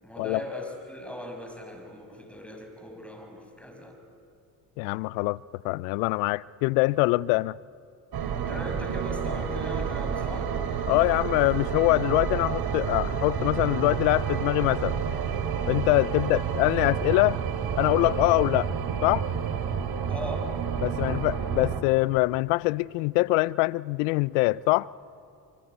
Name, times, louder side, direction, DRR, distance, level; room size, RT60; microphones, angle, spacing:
voice 1, 0.0-4.0 8.3-10.5 16.3-16.4 20.1-20.5, left 1 dB, 5° left, 6.5 m, -39 dB
voice 2, 4.8-7.6 10.9-15.0 15.7-17.4 17.8-18.7 19.0-19.3 20.8-24.9, left 22 dB, 80° left, 0.6 m, -24 dB
sound 1, 8.1-21.8, right 7 dB, 55° right, 2.8 m, -29 dB
24.5 x 24.0 x 9.2 m
hypercardioid pair, 65°, 46 cm